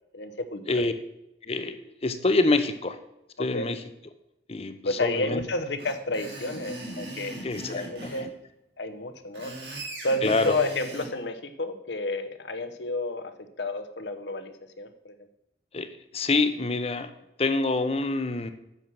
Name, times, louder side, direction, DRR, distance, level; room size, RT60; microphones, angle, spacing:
voice 1, 0.1-0.9 3.5-3.7 4.8-8.3 8.8-9.6 10.0-13.3 13.6-15.1, left 2 dB, 80° left, 8 dB, 0.9 m, -31 dB
voice 2, 1.5-3.0 3.4-3.8 4.5-5.4 7.4-8.3 10.2-10.5 15.7-17.1 17.4-18.5, left 3 dB, 35° left, 10 dB, 0.7 m, -26 dB
Screech, 5.8-8.2 9.1-11.1, right 1 dB, 70° right, 3.7 m, -39 dB
8.8 x 6.2 x 6.2 m, 0.87 s
head